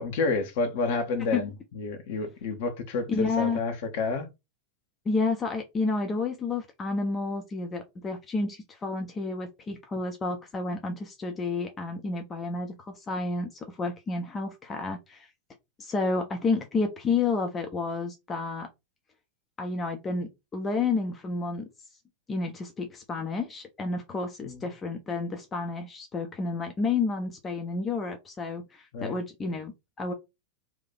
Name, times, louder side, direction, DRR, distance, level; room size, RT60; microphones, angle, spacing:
voice 1, 0.0-4.3 24.4-24.6 28.9-29.1, left 3 dB, 50° left, 1.1 m, -30 dB
voice 2, 3.1-3.6 5.0-15.3 15.8-18.7 19.6-21.7 22.3-30.1, left 3 dB, 20° left, 0.6 m, -30 dB
2.9 x 2.6 x 4.1 m
figure-of-eight pair, 90°, 0 cm